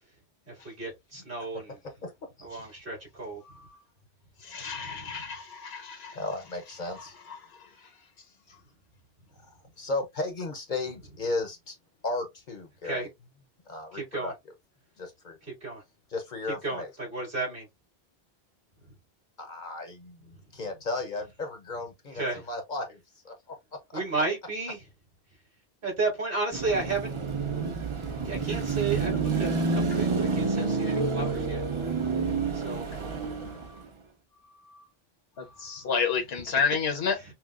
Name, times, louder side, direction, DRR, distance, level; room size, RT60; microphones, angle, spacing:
voice 1, 0.5-1.8 2.4-3.4 4.6-5.2 12.8-13.1 13.9-14.3 15.6-15.8 16.6-17.7 22.1-22.4 23.9-24.8 25.8-27.1 28.2-31.6 32.5-32.9 37.2-37.3, right 3 dB, 60° right, 2.7 m, -33 dB
voice 2, 4.4-6.2 7.3-7.4 34.7-34.8 35.4-37.1, left 6 dB, 75° left, 1.2 m, -30 dB
voice 3, 6.1-7.2 9.5-11.8 12.0-13.1 13.7-14.3 15.0-15.4 16.1-16.9 19.4-23.0 23.2-23.6 33.4-33.6, left 2 dB, 50° left, 0.8 m, -35 dB
Car passing by / Traffic noise roadway noise / Engine, 26.5-33.9, right 4 dB, 35° right, 0.6 m, -29 dB
5.8 x 2.0 x 2.4 m
omnidirectional pair, 1.0 m